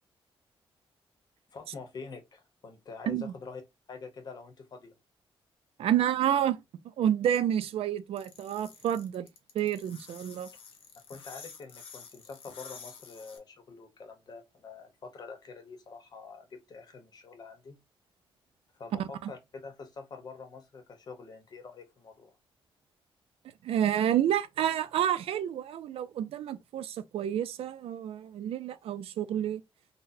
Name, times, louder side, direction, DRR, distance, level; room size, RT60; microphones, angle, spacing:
voice 1, 1.5-3.6 3.9-4.9 11.1-17.8 18.7-22.4, left 4 dB, 45° left, 0.8 m, -46 dB
voice 2, 5.8-6.6 7.0-9.3 9.5-10.5 18.9-19.3 23.6-29.6, right 10 dB, 85° right, 0.4 m, -29 dB
sound 1, 8.2-13.4, left 6 dB, 70° left, 0.9 m, -49 dB
4.0 x 2.1 x 2.6 m
wide cardioid pair, 175°, 10 cm